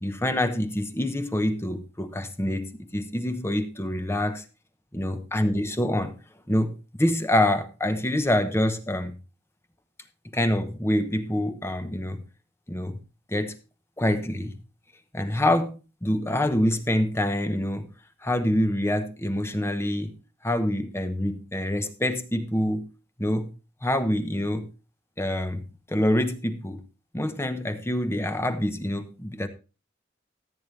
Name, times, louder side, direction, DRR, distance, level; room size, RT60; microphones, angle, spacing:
voice 1, 0.0-4.4 4.9-6.1 6.5-9.1 10.3-12.2 12.7-13.0 13.3-13.5 14.0-14.6 15.1-17.9 18.2-20.2 20.4-22.9 23.2-23.5 23.8-24.7 25.2-26.8 27.1-29.5, left 1 dB, 15° left, 10 dB, 1.0 m, -26 dB
14.5 x 8.9 x 3.3 m, 0.31 s
head